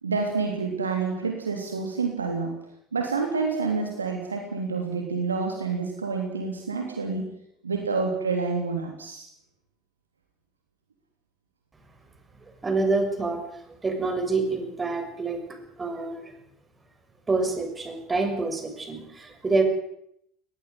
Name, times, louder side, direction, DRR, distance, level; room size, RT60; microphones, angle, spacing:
voice 1, 0.0-2.6 2.9-7.2 7.6-9.3, right 4 dB, 85° right, 3 dB, 3.2 m, -28 dB
voice 2, 12.6-15.4 15.8-16.3 17.3-19.6, right 3 dB, 20° right, 6 dB, 6.7 m, -27 dB
20.0 x 18.5 x 9.5 m, 0.74 s
figure-of-eight pair, 65°, 0 cm